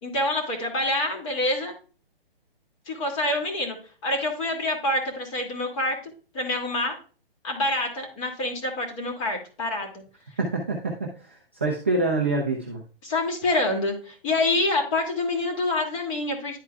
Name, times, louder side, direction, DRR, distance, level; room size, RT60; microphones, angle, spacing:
voice 1, 0.0-1.7 2.9-3.8 4.0-6.0 6.3-6.9 7.4-10.0 13.0-16.6, left 2 dB, 35° left, 2 dB, 2.4 m, -26 dB
voice 2, 10.4-12.8, right 2 dB, 15° right, -2 dB, 0.3 m, -26 dB
11.0 x 4.5 x 2.3 m, 0.37 s
hypercardioid pair, 150°, 29 cm